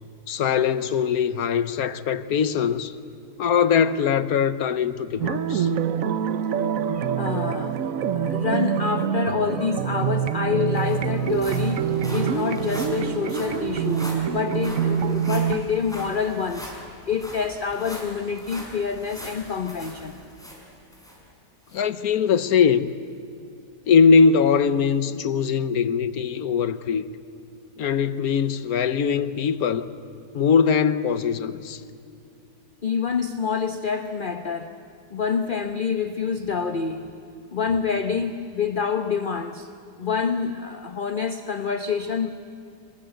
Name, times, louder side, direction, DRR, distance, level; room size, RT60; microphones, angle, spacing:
voice 1, 0.3-2.9 3.4-5.7 21.7-23.0 23.9-27.0 27.8-29.9 30.3-31.8, left 6 dB, 65° left, 1.3 m, -21 dB
sound 1, 5.2-15.6, right 8 dB, 60° right, 1.1 m, -25 dB
voice 2, 6.9-20.2 32.8-34.8 35.1-37.1 37.5-39.7 40.0-42.3, left 6 dB, 40° left, 0.9 m, -27 dB
sound 2, 10.3-21.2 21.7-21.8 22.4-22.5, equal, ahead, 5.6 m, -41 dB
26.0 x 22.0 x 9.1 m
omnidirectional pair, 1.8 m